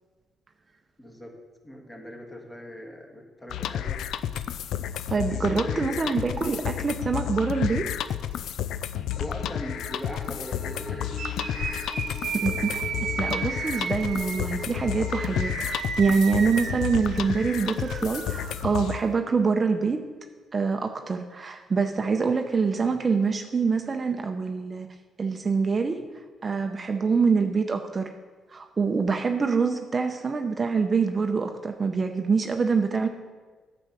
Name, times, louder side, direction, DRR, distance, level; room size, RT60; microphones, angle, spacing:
voice 1, 1.0-1.4 1.6-4.0 5.2-6.2 9.2-11.2, equal, 15° left, 2 dB, 1.7 m, -40 dB
sound 1, 3.5-19.0, left 10 dB, 80° left, 0.4 m, -31 dB
voice 2, 5.1-7.9 12.3-20.0 20.5-24.9 25.2-26.1 26.4-28.1 28.5-33.1, right 5 dB, 35° right, 5 dB, 0.6 m, -25 dB
sound 2, 9.1-15.4, left 1 dB, 35° left, 2.2 m, -42 dB
sound 3, 11.1-19.1, right 6 dB, 65° right, 0.9 m, -35 dB
9.4 x 5.1 x 6.9 m, 1.4 s
cardioid pair, 90°, 0 cm